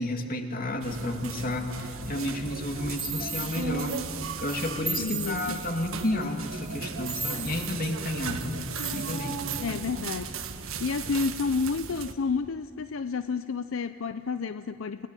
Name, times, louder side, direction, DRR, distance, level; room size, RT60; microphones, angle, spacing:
voice 1, 0.0-3.9 4.4-8.6 8.9-9.4, left 1 dB, 45° left, 4 dB, 2.4 m, -31 dB
sound 1, 0.8-12.1, right 5 dB, 85° right, 1.4 m, -36 dB
sound 2, 3.0-3.7 4.9-5.7 7.1-7.8 8.7-9.4, right 3 dB, 15° right, 2.8 m, -35 dB
voice 2, 5.0-5.6 7.1-7.2 9.6-15.1, left 4 dB, 75° left, 11 dB, 0.5 m, -31 dB
29.5 x 18.0 x 9.1 m, 2.7 s
head